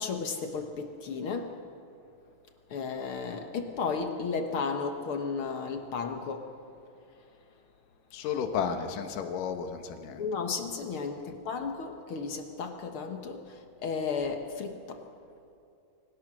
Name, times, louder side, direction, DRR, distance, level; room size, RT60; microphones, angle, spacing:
voice 1, 0.0-1.5 2.7-6.5 10.2-15.0, left 5 dB, 60° left, 5 dB, 1.5 m, -34 dB
voice 2, 8.1-10.2 11.3-11.4, left 7 dB, 75° left, 6 dB, 2.9 m, -33 dB
25.0 x 17.5 x 6.2 m, 2.6 s
omnidirectional pair, 3.9 m